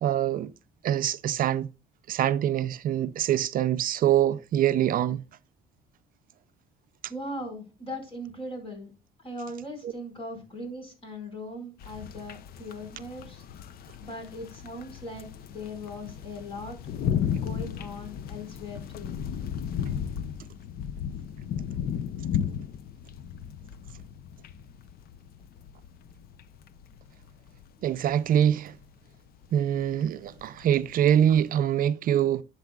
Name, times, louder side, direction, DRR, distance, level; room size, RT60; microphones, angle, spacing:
voice 1, 0.0-0.5 0.8-1.7 2.1-5.2 9.8-9.9 27.8-28.7 29.5-32.4, right 10 dB, 55° right, 0.5 m, -24 dB
voice 2, 7.1-8.9 9.2-13.4 14.0-16.8 17.3-19.1, left 1 dB, 35° left, 5.0 m, -39 dB
sound 1, 11.8-31.5, left 8 dB, 60° left, 0.7 m, -35 dB
11.5 x 6.7 x 2.4 m
cardioid pair, 110°, 17 cm